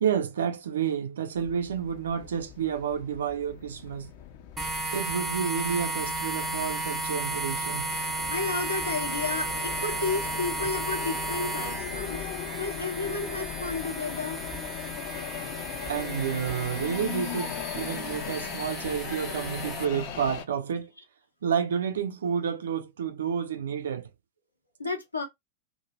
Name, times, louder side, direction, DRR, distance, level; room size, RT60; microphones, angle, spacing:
voice 1, 0.0-4.1 4.9-7.9 15.8-20.9 21.4-24.1, right 7 dB, 65° right, 0.4 m, -30 dB
sound 1, 1.4-20.4, left 8 dB, 50° left, 0.4 m, -39 dB
sound 2, 4.6-19.9, right 2 dB, 10° right, 0.5 m, -34 dB
voice 2, 8.3-12.3 12.6-14.4 17.9-18.0 24.8-25.2, left 3 dB, 85° left, 0.8 m, -32 dB
2.1 x 2.0 x 2.8 m
figure-of-eight pair, 90°, 0 cm